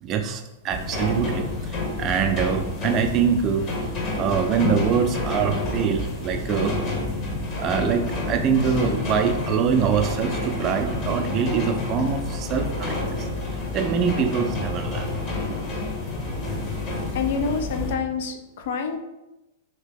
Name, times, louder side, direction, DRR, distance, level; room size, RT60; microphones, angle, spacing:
voice 1, 0.0-3.6 4.2-6.8 7.6-15.1, right 7 dB, 35° right, 5 dB, 0.4 m, -24 dB
sound 1, 0.7-17.9, left 2 dB, 35° left, 0.9 m, -29 dB
voice 2, 17.1-19.0, left 5 dB, 65° left, 6 dB, 0.4 m, -27 dB
2.8 x 2.8 x 3.5 m, 0.97 s
hypercardioid pair, 120°, 0 cm